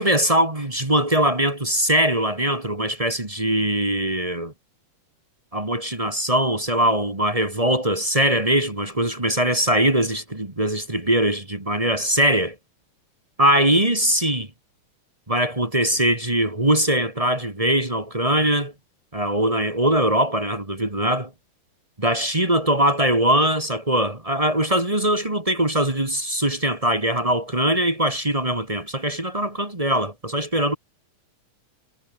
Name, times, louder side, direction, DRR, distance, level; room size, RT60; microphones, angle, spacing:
voice 1, 0.0-4.5 5.5-12.5 13.4-14.5 15.3-18.7 19.1-21.3 22.0-30.8, right 1 dB, 15° right, 1.5 m, -21 dB
omnidirectional pair, 3.8 m